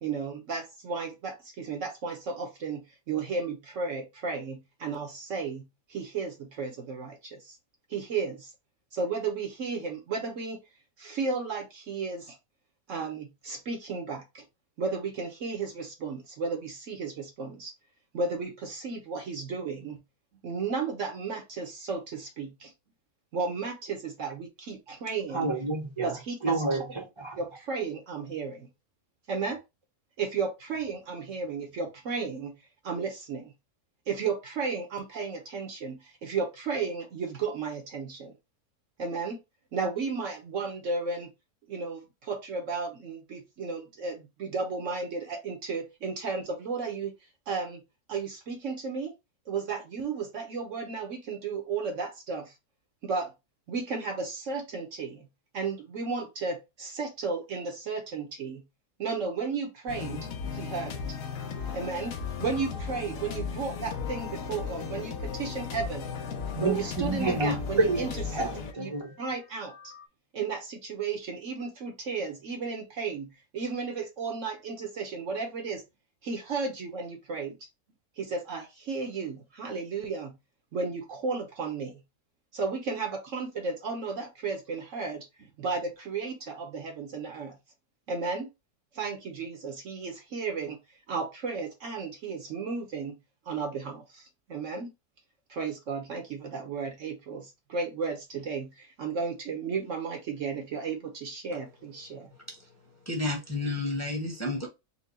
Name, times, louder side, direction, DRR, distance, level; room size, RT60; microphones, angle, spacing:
voice 1, 0.0-7.6 7.9-8.5 8.9-10.6 11.0-12.4 12.9-14.4 14.8-17.7 18.1-20.0 20.4-22.7 23.3-25.5 26.0-26.8 27.4-28.7 29.3-29.6 30.2-33.5 34.1-38.3 39.0-39.4 39.7-41.3 41.7-47.1 47.5-47.8 48.1-49.1 49.5-52.6 53.0-53.3 53.7-55.3 55.5-58.7 59.0-61.0 61.7-66.1 66.6-68.4 68.8-68.9 69.2-69.9 70.3-75.8 76.2-77.7 78.2-80.4 80.7-82.0 82.5-87.6 88.1-88.5 88.9-90.8 91.1-93.1 93.5-94.9 95.5-102.3, right 4 dB, 60° right, 1.1 m, -34 dB
voice 2, 25.3-26.1 26.4-27.4 66.5-68.0 68.3-69.1, right 2 dB, 25° right, 0.7 m, -29 dB
sound 1, 59.9-70.0, left 6 dB, 65° left, 1.1 m, -36 dB
voice 3, 103.1-104.7, left 2 dB, 10° left, 1.0 m, -31 dB
4.5 x 2.2 x 4.1 m
omnidirectional pair, 1.7 m